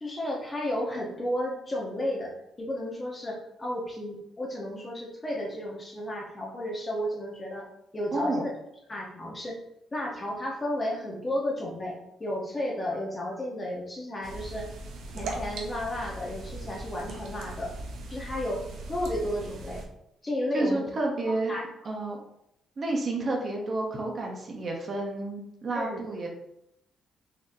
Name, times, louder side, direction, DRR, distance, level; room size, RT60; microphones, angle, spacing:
voice 1, 0.0-7.7 7.9-8.5 8.9-9.6 9.9-14.7 15.1-17.7 18.1-19.8 20.2-20.9 21.5-21.7 25.8-26.0, left 1 dB, 25° left, -2 dB, 1.0 m, -33 dB
voice 2, 8.1-8.4 20.5-21.5 21.8-22.2 22.8-26.3, right 2 dB, 45° right, 0 dB, 0.8 m, -30 dB
sound 1, 14.2-19.9, right 2 dB, 75° right, 0.6 m, -39 dB
4.1 x 3.0 x 2.7 m, 0.81 s
cardioid pair, 90°, 0 cm